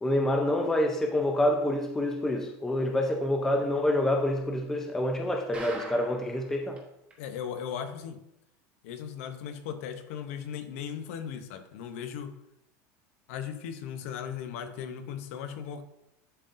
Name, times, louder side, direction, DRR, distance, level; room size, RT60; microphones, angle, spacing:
voice 1, 0.0-6.8, left 1 dB, 5° left, 2 dB, 0.5 m, -27 dB
sound 1, 5.5-6.4 6.8-6.9 7.1-7.2 7.7-7.8, right 2 dB, 15° right, 1.0 m, -41 dB
voice 2, 7.2-8.2 8.8-12.4 13.3-15.8, left 8 dB, 70° left, 8 dB, 0.8 m, -37 dB
11.0 x 3.8 x 2.6 m, 0.82 s
cardioid pair, 175°, 8 cm